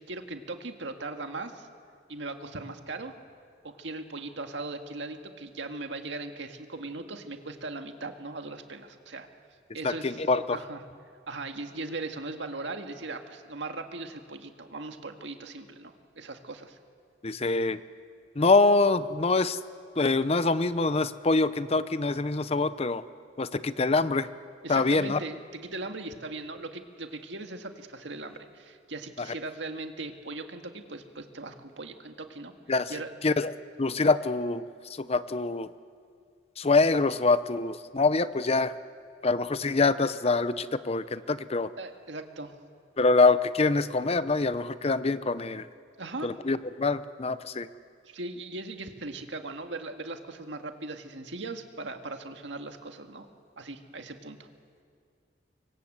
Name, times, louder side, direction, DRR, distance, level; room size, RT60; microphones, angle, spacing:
voice 1, 0.1-1.7 2.1-3.1 3.6-9.3 9.7-10.2 10.5-10.8 11.3-16.8 24.6-32.5 32.9-33.1 41.8-42.5 46.0-46.3 48.1-53.3 53.6-54.4, right 2 dB, 70° right, 5 dB, 1.9 m, -39 dB
voice 2, 9.8-10.6 17.2-17.8 18.4-19.6 20.0-23.0 23.4-24.3 24.7-25.2 32.7-32.9 33.2-33.5 33.8-34.6 34.9-35.7 36.6-38.7 39.2-41.7 43.0-45.7 46.2-47.7, left 3 dB, 35° left, 14 dB, 0.7 m, -25 dB
26.0 x 23.5 x 8.0 m, 2.2 s
head